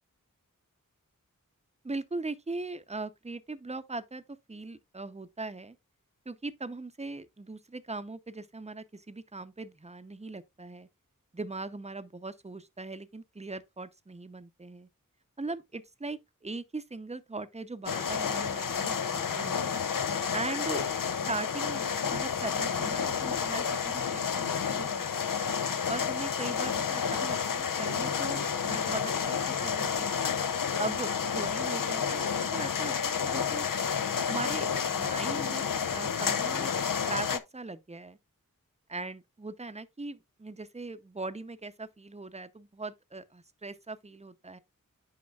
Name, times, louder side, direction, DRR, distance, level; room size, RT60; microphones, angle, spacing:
voice 1, 1.8-4.2 4.5-5.8 6.3-10.9 11.3-14.9 15.4-19.8 20.3-20.9 21.3-25.3 25.9-30.2 30.8-31.1 31.3-33.7 34.3-36.7 37.1-38.2 38.9-44.6, right 3 dB, 20° right, 0.7 m, -40 dB
sound 1, 17.9-37.4, left 7 dB, 75° left, 0.6 m, -30 dB
9.6 x 5.1 x 2.4 m
wide cardioid pair, 50°, 33 cm